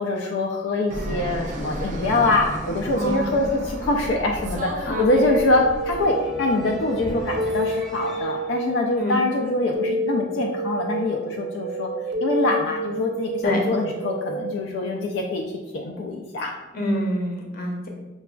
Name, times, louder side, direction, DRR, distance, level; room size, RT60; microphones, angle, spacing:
voice 1, 0.0-11.9 12.2-15.5 15.7-16.5, left 2 dB, 80° left, 1 dB, 0.4 m, -24 dB
sound 1, 0.9-9.9, equal, ahead, 0.6 m, -42 dB
Fixed-wing aircraft airplane, 0.9-6.0, right 1 dB, 40° right, 0.4 m, -33 dB
voice 2, 2.9-3.4 4.9-5.3 9.0-9.1 12.4-12.7 13.4-13.6 16.7-17.9, left 1 dB, 50° left, 0 dB, 0.7 m, -27 dB
sound 2, 5.0-14.5, right 1 dB, 85° right, 0.6 m, -29 dB
5.8 x 2.3 x 2.3 m, 1.1 s
head